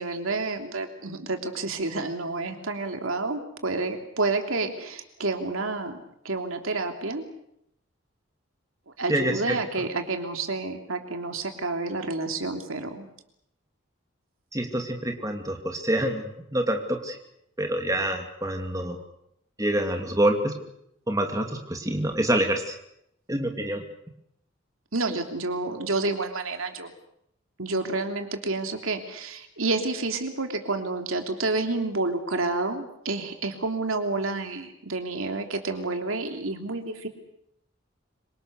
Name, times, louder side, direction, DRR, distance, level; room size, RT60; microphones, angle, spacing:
voice 1, 0.0-7.3 8.9-13.1 24.9-26.9 27.6-37.1, right 3 dB, 90° right, 5 dB, 3.1 m, -29 dB
voice 2, 9.1-9.6 14.5-17.2 17.6-19.0 19.6-20.5 21.1-22.8 23.3-23.9, right 1 dB, 15° right, 3 dB, 2.7 m, -26 dB
26.0 x 24.5 x 6.7 m, 0.76 s
head